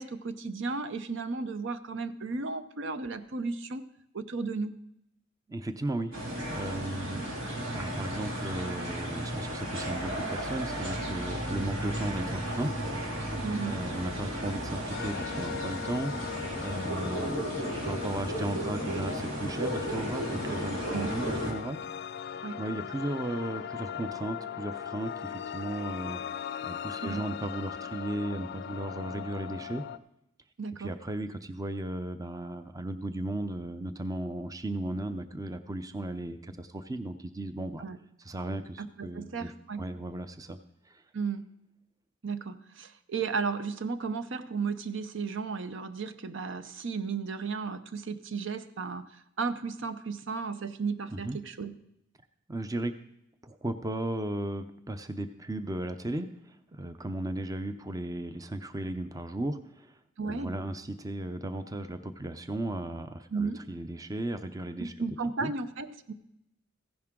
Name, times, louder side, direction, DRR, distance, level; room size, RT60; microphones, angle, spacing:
voice 1, 0.0-3.8 4.1-4.8 13.4-13.8 20.9-21.1 22.4-22.6 27.0-27.2 30.6-30.9 37.8-38.0 38.8-39.9 41.1-41.4 42.2-51.8 60.2-60.5 63.3-63.6 64.8-66.1, right 4 dB, 65° right, 11 dB, 0.7 m, -34 dB
voice 2, 5.5-6.1 6.5-12.7 13.7-21.8 22.6-26.2 26.6-29.8 30.8-37.9 38.2-39.5 39.8-40.6 40.9-41.0 51.1-51.4 52.5-52.9 53.4-60.0 60.2-64.9 65.4-65.5, right 1 dB, 20° right, 10 dB, 0.6 m, -35 dB
sound 1, 6.1-21.5, equal, 80° right, 2.7 m, -34 dB
sound 2, 14.9-30.0, left 8 dB, 55° left, 0.5 m, -39 dB
15.5 x 10.5 x 3.7 m, 0.80 s
head